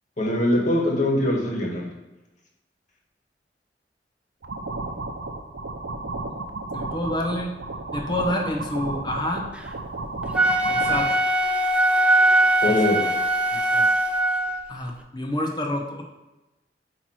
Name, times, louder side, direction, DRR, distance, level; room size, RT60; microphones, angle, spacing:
voice 1, 0.2-1.8 12.6-13.0, left 1 dB, 45° left, -1 dB, 1.5 m, -22 dB
sound 1, 4.4-11.1, right 2 dB, 75° right, 0.6 m, -33 dB
voice 2, 6.7-7.5 7.9-9.5 10.7-11.2 12.6-12.7 13.5-13.9 14.7-16.0, left 1 dB, 25° left, 1 dB, 0.8 m, -28 dB
Wind instrument woodwind instrument, 10.2-14.6, right 1 dB, 5° right, 0.5 m, -21 dB
8.4 x 2.9 x 4.5 m, 1.0 s
head